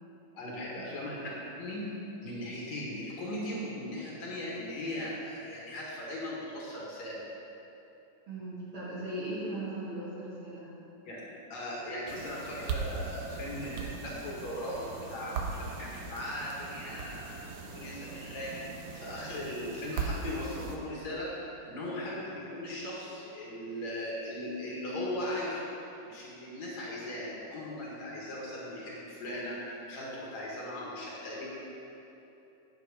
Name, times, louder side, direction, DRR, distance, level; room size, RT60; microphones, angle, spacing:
voice 1, 0.3-1.3 1.6-1.9 2.2-7.2 11.0-11.2 11.5-17.3 17.7-18.6 18.9-21.3 21.6-25.7 26.0-29.6 29.9-31.5, left 1 dB, 60° left, -5 dB, 2.9 m, -38 dB
voice 2, 8.3-10.7, right 1 dB, 45° right, -9 dB, 2.7 m, -38 dB
sound 1, 12.1-20.8, right 5 dB, 85° right, 1.2 m, -39 dB
9.9 x 8.0 x 5.0 m, 2.9 s
omnidirectional pair, 3.7 m